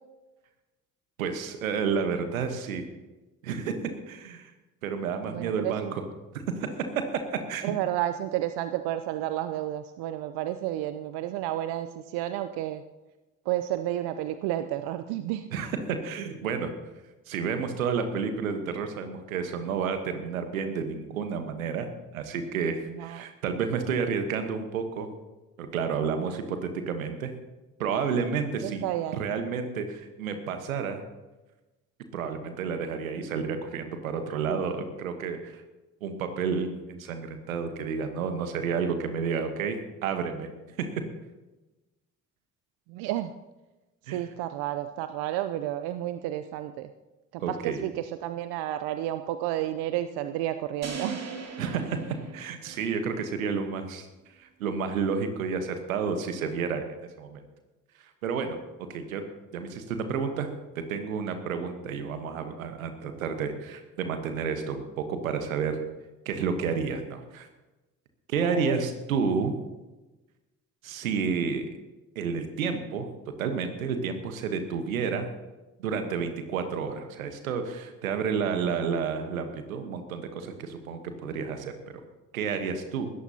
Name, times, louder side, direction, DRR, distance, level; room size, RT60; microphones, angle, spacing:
voice 1, 1.2-2.8 3.4-3.7 4.1-4.5 4.8-6.0 6.3-6.7 7.5-7.7 15.5-16.7 17.3-21.9 22.1-25.1 25.6-27.3 27.8-28.8 29.1-31.0 32.1-35.6 36.0-40.5 44.1-44.3 47.4-47.8 51.6-52.0 52.3-54.1 54.4-56.8 57.2-57.4 58.0-58.6 58.9-59.2 59.5-65.8 66.2-67.5 68.3-69.5 70.8-71.7 72.1-73.1 73.4-75.3 75.8-81.7 82.3-83.1, right 6 dB, 85° right, 8 dB, 1.3 m, -30 dB
voice 2, 5.3-5.9 7.6-11.9 12.1-12.8 13.5-15.5 22.9-23.2 28.6-29.2 42.9-43.3 44.1-46.9 47.3-47.9 48.2-51.2 68.5-68.7, right 13 dB, 65° right, 10 dB, 0.7 m, -31 dB
sound 1, 50.8-53.1, right 5 dB, 40° right, 2.7 m, -39 dB
19.5 x 14.0 x 2.9 m, 1.1 s
hypercardioid pair, 45°, 40 cm